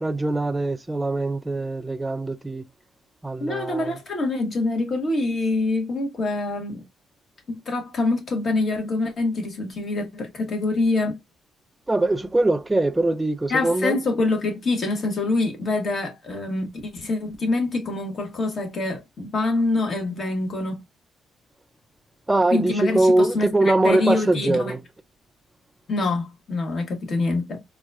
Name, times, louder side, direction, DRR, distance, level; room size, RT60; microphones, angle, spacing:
voice 1, 0.0-2.6 3.2-4.0 11.9-14.0 22.3-24.8, right 2 dB, 15° right, 0.5 m, -22 dB
voice 2, 3.4-6.8 7.5-11.2 13.5-20.8 22.5-24.7 25.9-27.6, left 2 dB, 50° left, 1.4 m, -25 dB
4.0 x 2.4 x 2.3 m
cardioid pair, 90°, 0 cm